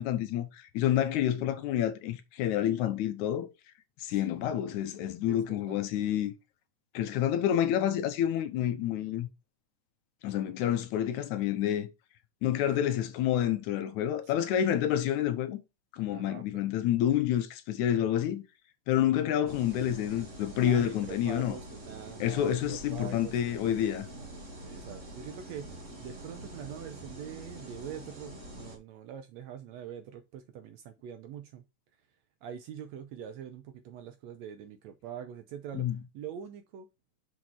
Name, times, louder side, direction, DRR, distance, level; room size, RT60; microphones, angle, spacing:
voice 1, 0.0-3.5 4.0-6.3 6.9-9.3 10.2-11.9 12.4-15.6 15.9-18.4 18.9-21.5 22.2-24.1 35.7-36.0, left 11 dB, 75° left, 2.0 m, -28 dB
voice 2, 4.1-4.5 5.3-5.4 5.7-5.8 16.1-16.4 20.6-23.4 23.8-23.9 24.7-25.7 26.0-31.6 32.4-35.9 36.1-36.9, right 9 dB, 75° right, 1.7 m, -44 dB
sound 1, 19.5-28.8, right 1 dB, 30° right, 1.6 m, -45 dB
6.3 x 4.7 x 4.4 m
omnidirectional pair, 3.7 m